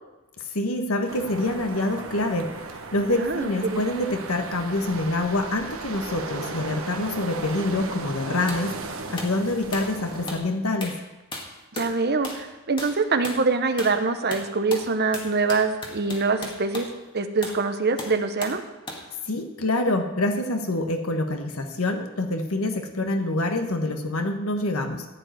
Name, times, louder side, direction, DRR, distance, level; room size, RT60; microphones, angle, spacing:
voice 1, 0.5-2.5 2.9-8.7 9.1-10.9 19.3-25.1, left 2 dB, 80° left, 5 dB, 1.4 m, -26 dB
sound 1, 1.1-10.4, right 3 dB, 70° right, 1.4 m, -36 dB
voice 2, 3.2-3.9 11.7-16.9 17.1-18.6, right 4 dB, 50° right, 8 dB, 1.0 m, -24 dB
sound 2, 8.5-8.7 9.2-9.4 9.7-10.0 10.3-10.5 10.8-11.0 11.3-12.0 12.2-12.5 12.8-13.0 13.2-13.4 13.8-14.0 14.3-16.9 17.4-17.6 18.0-18.6 18.9-19.1, left 2 dB, 25° left, 1.9 m, -36 dB
14.5 x 5.2 x 9.3 m, 1.1 s
head